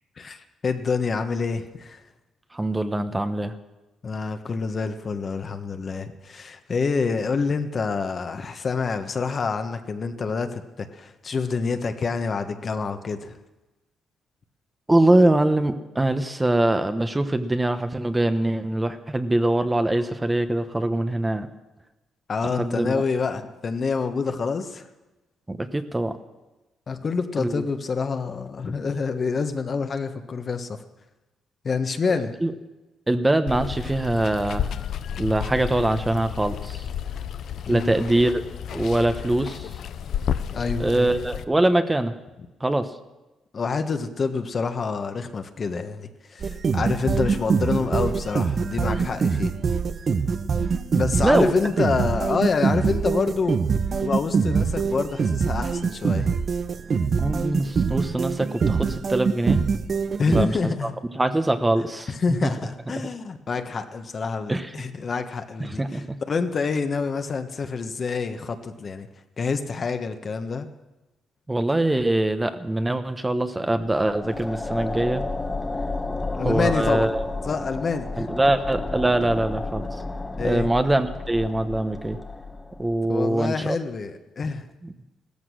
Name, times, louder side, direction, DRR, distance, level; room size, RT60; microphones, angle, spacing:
voice 1, 0.2-2.0 4.0-13.4 22.3-24.8 26.9-30.8 31.6-32.3 37.7-37.9 40.5-41.1 43.5-49.6 50.9-53.6 54.0-56.4 60.2-60.9 62.1-69.1 69.4-70.7 76.3-77.1 77.4-78.3 80.4-80.7 83.1-84.6, left 4 dB, 45° left, 7 dB, 1.3 m, -27 dB
voice 2, 2.5-3.5 14.9-21.5 22.4-23.0 25.5-26.2 27.4-27.5 32.1-32.5 33.1-34.7 35.2-36.8 37.7-38.4 38.7-39.7 40.8-42.1 42.6-42.9 51.2-51.5 57.2-59.6 60.3-60.5 60.8-60.9 61.1-62.1 62.4-62.5 64.5-64.7 65.6-66.2 71.5-75.2 76.4-77.3 78.2-79.9 80.4-82.2 82.8-83.8 84.8-84.9, right 1 dB, 15° right, 9 dB, 1.0 m, -23 dB
Water, 33.5-41.4, left 9 dB, 70° left, 0.7 m, -32 dB
sound 1, 46.4-60.5, right 5 dB, 45° right, 0.9 m, -24 dB
sound 2, 73.8-83.1, left 3 dB, 20° left, 1.3 m, -32 dB
16.0 x 14.0 x 6.4 m, 1.1 s
cardioid pair, 90°, 0 cm